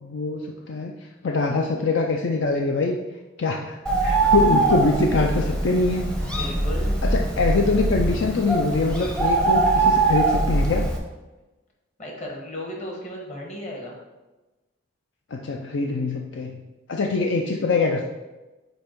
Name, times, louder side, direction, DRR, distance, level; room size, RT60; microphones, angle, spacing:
voice 1, 0.0-0.9 1.2-3.0 3.4-3.7 4.0-6.1 7.0-10.9 15.3-16.5 16.9-18.0, left 3 dB, 65° left, 2 dB, 0.4 m, -23 dB
Bird, 3.9-11.0, right 2 dB, 5° left, 0.6 m, -22 dB
voice 2, 6.3-6.9 12.0-14.0, equal, 35° left, -1 dB, 1.2 m, -35 dB
5.4 x 4.4 x 4.5 m, 1.1 s
head